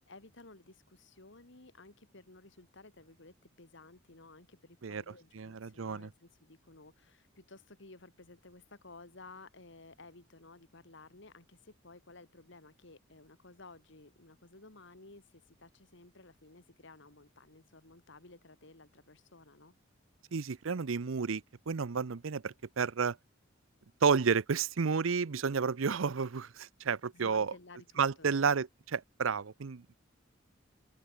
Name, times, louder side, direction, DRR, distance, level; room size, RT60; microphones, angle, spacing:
voice 1, 0.1-19.7 27.1-28.4, left 3 dB, 65° left, 2.7 m, -55 dB
voice 2, 5.3-6.1 20.3-23.2 24.0-27.5 28.0-29.9, right 5 dB, 90° right, 0.6 m, -31 dB
open air
head